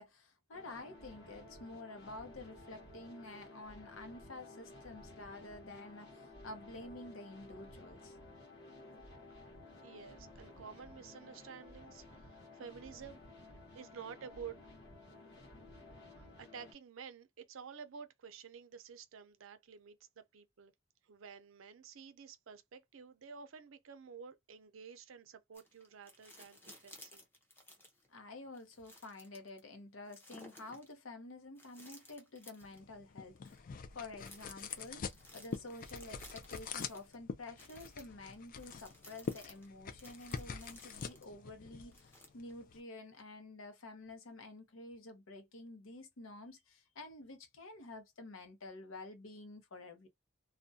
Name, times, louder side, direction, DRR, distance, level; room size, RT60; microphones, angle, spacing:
voice 1, 0.0-8.2 28.1-33.6 33.9-50.1, left 2 dB, 75° left, 0.8 m, -50 dB
sound 1, 0.5-16.7, left 2 dB, 60° left, 1.0 m, -55 dB
voice 2, 9.8-13.2 13.7-14.5 16.1-20.7 21.0-27.2, right 6 dB, 75° right, 0.5 m, -51 dB
sound 2, 25.5-28.1 28.5-29.6 30.1-30.9 31.6-32.8 33.4-33.6 34.2-37.1 37.6-41.3 41.9-42.6 43.2-43.3, left 1 dB, 10° left, 0.6 m, -57 dB
sound 3, 32.6-42.8, left 5 dB, 40° left, 0.3 m, -46 dB
2.4 x 2.1 x 2.6 m
head